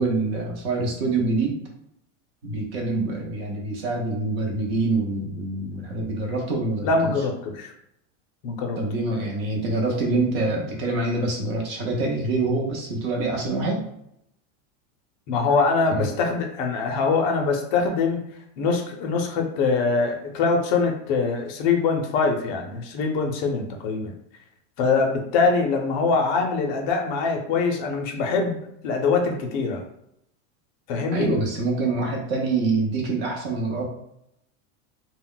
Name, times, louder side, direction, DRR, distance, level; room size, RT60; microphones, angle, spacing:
voice 1, 0.0-1.6 2.4-7.1 8.7-13.8 16.0-16.1 31.1-33.8, right 3 dB, 50° right, 0 dB, 0.8 m, -25 dB
voice 2, 6.8-7.7 8.4-8.8 15.3-18.2 18.6-24.1 24.8-28.6 28.8-29.8 30.9-31.3, left 4 dB, 40° left, 2 dB, 0.5 m, -23 dB
2.2 x 2.0 x 3.7 m, 0.76 s
supercardioid pair, 165°, 38 cm